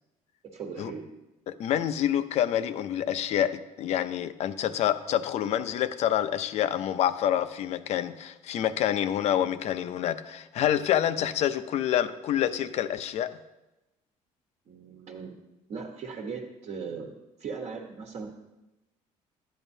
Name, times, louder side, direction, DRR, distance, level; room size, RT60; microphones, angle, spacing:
voice 1, 0.4-1.1 14.7-15.4 15.7-18.3, right 5 dB, 55° right, 1 dB, 1.3 m, -38 dB
voice 2, 1.5-13.4, left 10 dB, 60° left, 12 dB, 0.6 m, -27 dB
12.0 x 9.0 x 2.7 m, 0.99 s
cardioid pair, 125°, 13 cm